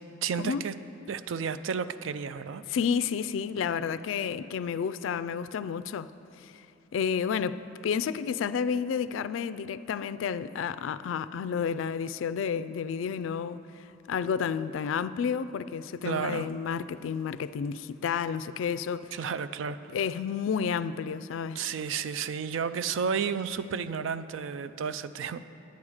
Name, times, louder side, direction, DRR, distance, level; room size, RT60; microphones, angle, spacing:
voice 1, 0.2-0.7 1.1-2.6 16.0-16.5 19.1-19.8 21.6-25.4, right 6 dB, 70° right, 0.4 m, -32 dB
voice 2, 2.7-6.1 6.4-6.6 6.9-19.2 19.9-21.6, left 7 dB, 70° left, 0.3 m, -31 dB
10.5 x 8.7 x 4.8 m
head